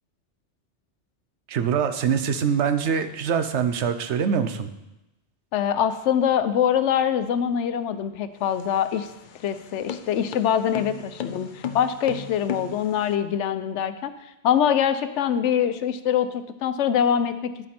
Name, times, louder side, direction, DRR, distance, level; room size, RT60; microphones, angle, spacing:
voice 1, 1.5-4.7, right 7 dB, 75° right, 9 dB, 1.0 m, -24 dB
voice 2, 5.5-9.1 9.4-14.1 14.4-17.5, left 9 dB, 85° left, 11 dB, 0.9 m, -24 dB
sound 1, 8.4-13.1, left 8 dB, 55° left, 0.6 m, -35 dB
10.0 x 7.3 x 4.3 m, 0.94 s
omnidirectional pair, 1.2 m